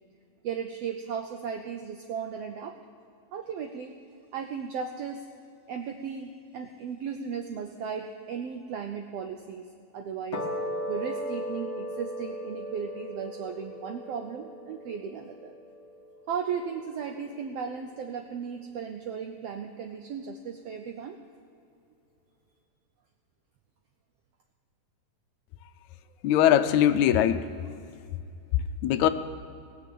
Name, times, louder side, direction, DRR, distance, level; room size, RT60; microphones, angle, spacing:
voice 1, 0.4-2.8 3.3-3.9 4.3-5.2 5.7-9.7 9.9-10.5 10.9-15.5 16.3-21.2, right 6 dB, 80° right, 4 dB, 1.4 m, -36 dB
sound 1, 10.3-16.8, equal, 45° left, 1.2 m, -37 dB
voice 2, 26.2-27.5 28.8-29.1, left 10 dB, 80° left, 11 dB, 1.9 m, -21 dB
19.5 x 6.6 x 7.6 m, 2.5 s
omnidirectional pair, 3.6 m